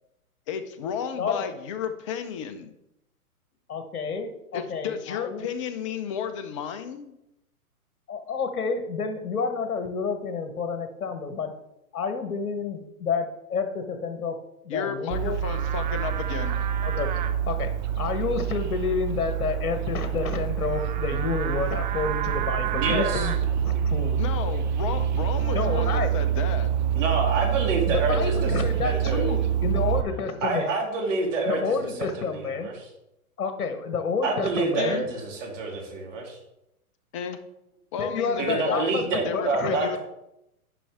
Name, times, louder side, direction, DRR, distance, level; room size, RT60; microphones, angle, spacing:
voice 1, 0.5-2.7 4.5-7.2 14.7-16.6 24.2-26.7 34.8-35.0 37.1-37.4 37.9-38.9 39.2-40.0, left 7 dB, 20° left, 9 dB, 0.5 m, -33 dB
voice 2, 3.7-5.5 8.1-11.5 11.9-14.4 14.6-15.4 16.8-17.1 17.5-17.7 18.0-23.3 23.6-24.2 25.5-26.1 27.9-30.7 31.5-32.7 33.4-35.1 38.0-39.0 39.3-39.8, left 5 dB, 70° left, 7 dB, 1.2 m, -29 dB
Livestock farm animals working animals, 15.1-30.0, right 9 dB, 30° right, 0.5 m, -26 dB
voice 3, 22.8-23.3 27.0-28.5 28.8-29.3 30.4-32.9 34.2-36.4 38.4-40.0, right 3 dB, 55° right, 0 dB, 2.9 m, -27 dB
10.0 x 5.3 x 3.5 m, 0.85 s
hypercardioid pair, 125°, 45 cm